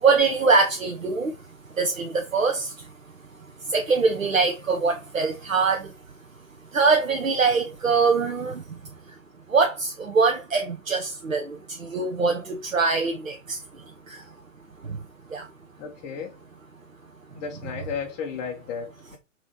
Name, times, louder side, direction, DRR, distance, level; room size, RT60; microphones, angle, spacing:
voice 1, 0.0-1.3 1.8-2.9 3.6-5.9 6.7-8.6 9.5-13.6 14.1-14.2 14.8-15.0 15.3-15.5, right 4 dB, 90° right, 0.8 m, -23 dB
voice 2, 15.8-16.3 17.4-19.2, left 6 dB, 25° left, 0.6 m, -34 dB
5.9 x 3.1 x 2.8 m
figure-of-eight pair, 115°, 39 cm